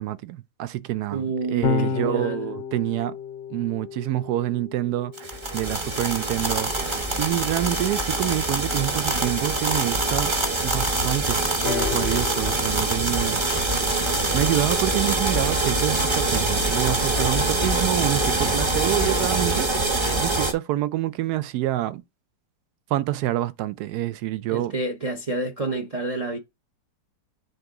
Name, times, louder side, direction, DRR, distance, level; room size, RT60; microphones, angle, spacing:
voice 1, 0.0-1.2 1.5-3.2 3.5-6.7 7.2-10.3 10.6-11.4 11.6-13.4 14.3-22.0 22.9-24.7, right 14 dB, 75° right, 1.0 m, -27 dB
voice 2, 1.1-2.5 24.5-26.4, right 3 dB, 45° right, 0.4 m, -29 dB
Electric guitar / Bass guitar, 1.6-8.0, left 6 dB, 65° left, 0.8 m, -33 dB
sound 1, 5.2-20.5, right 2 dB, 20° right, 0.8 m, -24 dB
sound 2, 11.7-15.5 16.4-16.5, left 12 dB, 80° left, 1.2 m, -36 dB
8.0 x 3.6 x 3.6 m
omnidirectional pair, 1.8 m